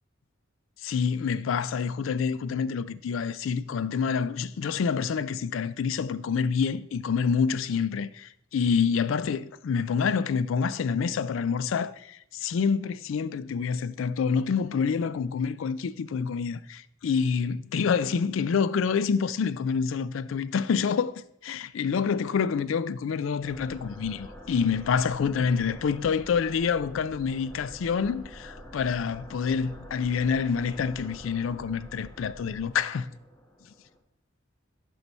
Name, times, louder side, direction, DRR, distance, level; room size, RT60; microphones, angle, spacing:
voice 1, 0.8-21.1 21.4-33.1, left 6 dB, 80° left, 0.4 m, -27 dB
sound 1, 23.4-34.0, equal, 15° left, 1.3 m, -46 dB
12.0 x 4.6 x 4.1 m
head